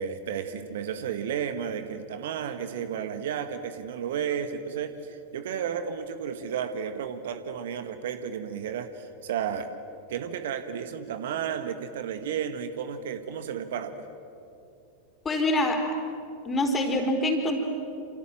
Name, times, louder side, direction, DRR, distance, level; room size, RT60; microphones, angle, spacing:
voice 1, 0.0-9.7 10.1-14.0, right 8 dB, 55° right, 10 dB, 1.5 m, -32 dB
voice 2, 15.2-15.9 16.4-17.6, left 1 dB, 20° left, 3 dB, 4.4 m, -25 dB
28.0 x 28.0 x 7.6 m, 2.7 s
figure-of-eight pair, 90°, 0 cm